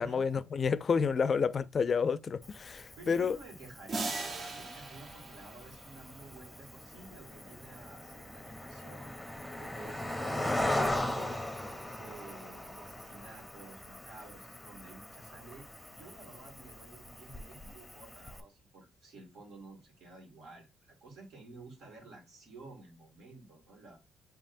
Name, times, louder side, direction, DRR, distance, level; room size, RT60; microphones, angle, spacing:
voice 1, 0.0-3.4, left 6 dB, 45° left, 0.3 m, -29 dB
Cricket, 2.4-18.4, left 1 dB, 5° left, 0.7 m, -39 dB
voice 2, 3.0-9.2 9.5-11.4 11.9-24.0, right 3 dB, 80° right, 1.9 m, -52 dB
sound 1, 3.9-6.4, right 3 dB, 50° right, 0.9 m, -39 dB
7.2 x 2.8 x 2.5 m
cardioid pair, 90°, 0 cm